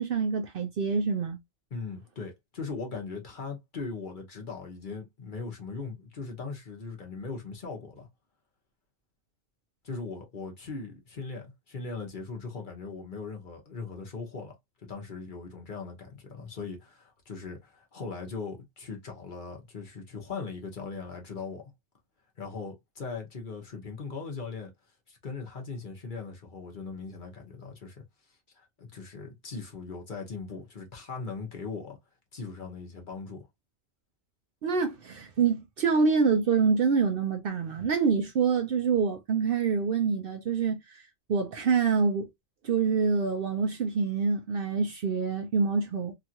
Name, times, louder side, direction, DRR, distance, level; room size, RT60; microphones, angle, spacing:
voice 1, 0.0-1.4 34.6-41.0 41.3-42.3 42.6-46.1, right 5 dB, 60° right, 0.6 m, -26 dB
voice 2, 1.7-8.1 9.8-14.5 14.8-21.7 22.4-24.7 25.1-28.0 28.5-32.0 32.3-33.5, left 4 dB, 45° left, 1.0 m, -39 dB
2.9 x 2.4 x 2.7 m
omnidirectional pair, 1.2 m